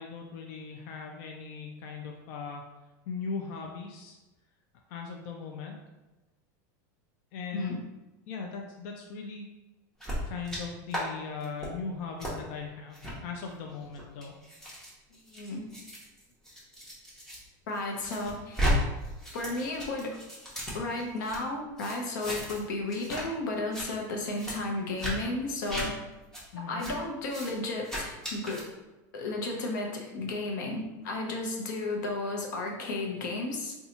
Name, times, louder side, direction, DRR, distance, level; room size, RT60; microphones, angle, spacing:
voice 1, 0.0-2.6 3.1-4.2 4.9-5.8 7.3-7.8 8.3-9.5 10.3-14.3 26.5-26.8, left 5 dB, 55° left, 2 dB, 0.4 m, -39 dB
sound 1, 10.0-10.6 10.9-11.0 11.4-11.7 12.2-12.3 12.9-13.1 13.8-17.4 17.7-18.7 19.0-21.4 21.8-22.6 22.9-23.2 23.5-23.9 24.3-24.5 25.0-25.1 25.6-25.9 26.3-26.4 26.8-26.9 27.3-27.5 27.8-28.6, equal, 5° left, 0.9 m, -35 dB
voice 2, 15.3-15.7 17.7-18.6 19.3-20.2 20.7-25.9 26.6-28.6 29.1-33.8, left 2 dB, 90° left, 1 dB, 0.8 m, -33 dB
2.8 x 2.3 x 4.0 m, 1.1 s
supercardioid pair, 145°, 10 cm